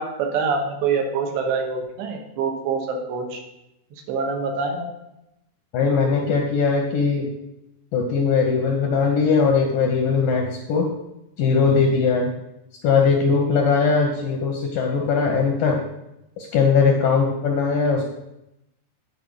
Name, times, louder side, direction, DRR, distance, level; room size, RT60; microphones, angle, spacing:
voice 1, 0.0-3.4 3.9-4.9, right 5 dB, 80° right, 2 dB, 3.4 m, -25 dB
voice 2, 5.7-7.3 7.9-10.9 11.4-12.3 12.8-15.9 16.4-18.0, left 5 dB, 75° left, 1 dB, 2.1 m, -20 dB
10.0 x 4.5 x 6.6 m, 0.87 s
omnidirectional pair, 5.0 m